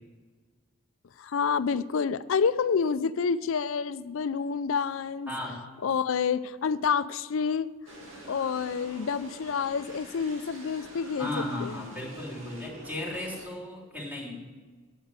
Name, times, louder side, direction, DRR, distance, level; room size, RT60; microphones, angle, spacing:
voice 1, 1.2-5.3 5.8-7.7 8.2-11.7, left 6 dB, 65° left, 16 dB, 0.4 m, -28 dB
voice 2, 5.3-5.6 11.2-14.5, left 1 dB, 5° right, -4 dB, 3.1 m, -35 dB
sound 1, 7.9-13.5, right 1 dB, 65° right, 2.4 m, -46 dB
9.1 x 8.1 x 7.5 m, 1.4 s
head